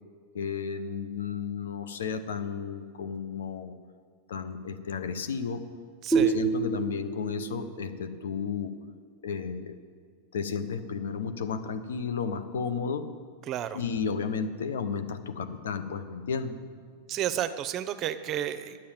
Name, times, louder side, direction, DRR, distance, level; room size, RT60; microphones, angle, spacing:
voice 1, 0.3-3.7 4.3-5.6 6.1-8.7 9.2-9.8 10.3-13.1 13.7-16.6, left 6 dB, 85° left, 10 dB, 0.9 m, -33 dB
voice 2, 6.0-6.4 13.5-13.8 17.1-18.8, right 11 dB, 40° right, 13 dB, 0.7 m, -31 dB
sound 1, 6.1-9.5, right 5 dB, 20° left, 1.7 m, -29 dB
10.0 x 7.5 x 8.8 m, 2.1 s
hypercardioid pair, 110°, 0 cm